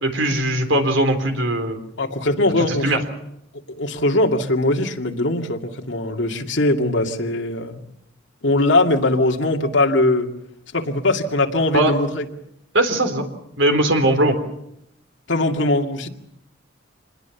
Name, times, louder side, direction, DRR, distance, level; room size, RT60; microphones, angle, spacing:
voice 1, 0.0-1.8 2.6-3.0 11.7-11.9 12.7-13.3 13.6-14.4, right 1 dB, 70° right, 7 dB, 3.7 m, -19 dB
voice 2, 2.0-2.9 3.8-7.8 8.4-10.3 10.7-12.3 15.3-16.1, left 2 dB, 65° left, 2 dB, 2.4 m, -20 dB
26.0 x 21.0 x 7.1 m, 0.80 s
head